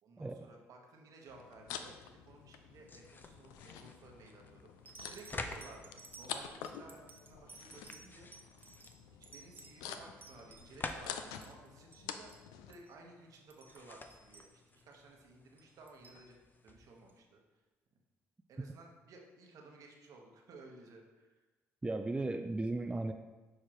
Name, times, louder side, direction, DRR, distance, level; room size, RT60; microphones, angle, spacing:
voice 1, 0.0-2.0 2.3-4.7 5.1-8.3 9.3-12.3 12.7-16.4 16.6-17.6 18.5-21.4, right 3 dB, 65° right, 1 dB, 1.1 m, -56 dB
sound 1, 1.3-12.7, left 8 dB, 80° left, 0.4 m, -48 dB
sound 2, 2.7-17.2, left 3 dB, 30° left, 0.6 m, -51 dB
sound 3, 4.0-4.3 4.8-11.0 11.3-12.0 12.3-12.5 12.7-12.9 13.3-14.9 15.6-16.2 17.1-17.2, right 4 dB, 30° right, 0.9 m, -56 dB
voice 2, 21.8-23.1, right 2 dB, 15° right, 6 dB, 0.3 m, -36 dB
6.6 x 4.7 x 3.0 m, 1.2 s
hypercardioid pair, 55°, 6 cm